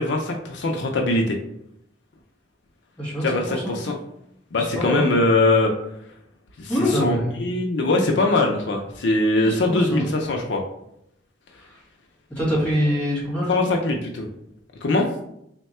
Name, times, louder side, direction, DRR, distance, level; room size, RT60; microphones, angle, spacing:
voice 1, 0.0-1.4 3.2-3.9 4.5-5.7 6.6-10.6 13.5-14.3 14.8-15.1, left 2 dB, 70° left, 1 dB, 0.5 m, -22 dB
voice 2, 3.0-3.8 4.5-5.0 6.7-7.4 9.4-10.1 12.3-13.7, equal, 10° left, -6 dB, 1.5 m, -25 dB
3.5 x 2.2 x 4.2 m, 0.77 s
head